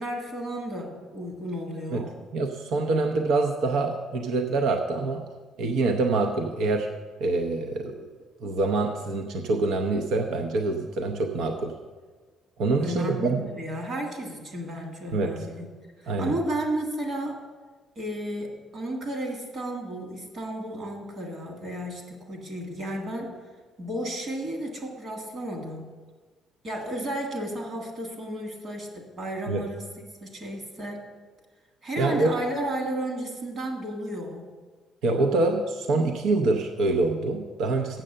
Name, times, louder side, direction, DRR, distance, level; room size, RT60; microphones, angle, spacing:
voice 1, 0.0-2.1 12.8-15.7 16.0-17.4 18.0-23.3 23.8-25.9 26.6-29.9 30.2-31.1 31.8-34.4, right 1 dB, 35° right, 2 dB, 1.8 m, -33 dB
voice 2, 2.3-5.2 5.6-6.9 7.2-8.1 8.4-11.7 12.6-13.5 15.1-15.5 16.1-16.3 29.5-29.6 32.0-32.3 35.0-38.0, right 3 dB, 70° right, 4 dB, 0.7 m, -25 dB
7.7 x 7.7 x 6.6 m, 1.4 s
cardioid pair, 170°, 0 cm